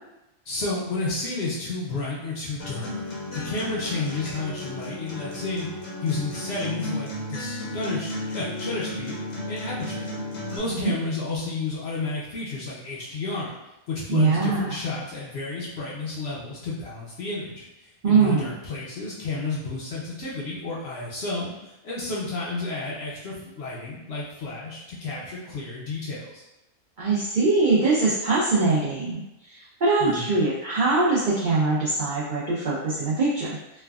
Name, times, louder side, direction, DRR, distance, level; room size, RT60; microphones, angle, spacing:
voice 1, 0.5-2.9 3.3-5.7 6.0-9.1 9.5-10.0 10.5-13.5 13.9-26.4 30.0-30.3, left 3 dB, 60° left, -6 dB, 0.7 m, -31 dB
Acoustic guitar, 2.6-10.6, left 1 dB, 75° left, 1.2 m, -34 dB
voice 2, 14.1-14.8 18.0-18.5 27.0-29.2 29.5-33.5, right 3 dB, 65° right, -8 dB, 0.4 m, -22 dB
3.2 x 2.2 x 2.3 m, 0.95 s
omnidirectional pair, 1.5 m